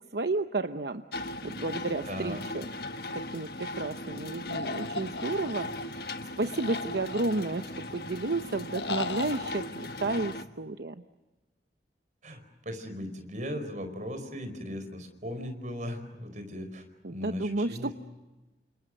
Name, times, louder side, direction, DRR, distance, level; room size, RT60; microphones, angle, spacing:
voice 1, 0.1-2.7 3.1-10.9 17.0-17.9, right 2 dB, 70° right, 8 dB, 0.9 m, -32 dB
sound 1, 1.1-10.4, left 2 dB, 60° left, 1.3 m, -38 dB
voice 2, 2.1-2.4 12.2-16.8 17.1-17.9, equal, 45° right, 7 dB, 4.8 m, -38 dB
sound 2, 4.5-5.8 6.5-7.7 8.7-9.5, left 3 dB, 90° left, 1.3 m, -37 dB
29.5 x 27.0 x 6.5 m, 1.1 s
head